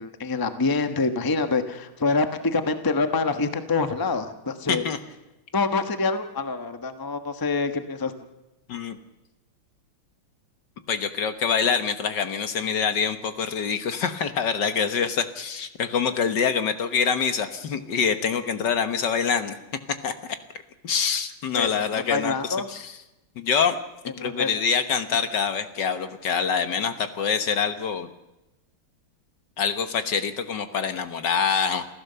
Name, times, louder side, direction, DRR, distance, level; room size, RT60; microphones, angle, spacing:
voice 1, 0.0-4.8 5.5-8.1 21.5-21.7 22.1-22.7 24.2-24.5, left 3 dB, 15° left, 8 dB, 1.0 m, -26 dB
voice 2, 10.9-19.5 20.0-20.1 20.8-23.0 23.4-23.7 24.2-28.1 29.6-31.9, left 6 dB, 60° left, 9 dB, 1.8 m, -25 dB
28.0 x 15.0 x 6.9 m, 0.97 s
omnidirectional pair, 2.3 m